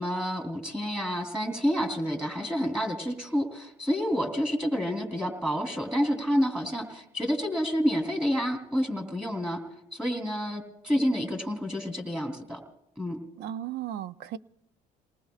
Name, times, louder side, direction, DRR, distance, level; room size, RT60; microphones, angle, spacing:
voice 1, 0.0-9.6 9.9-12.6 13.0-13.2, equal, 5° right, 3.3 m, -29 dB
voice 2, 13.4-14.4, right 11 dB, 75° right, 0.6 m, -35 dB
29.5 x 19.5 x 2.4 m
cardioid pair, 110°, 17 cm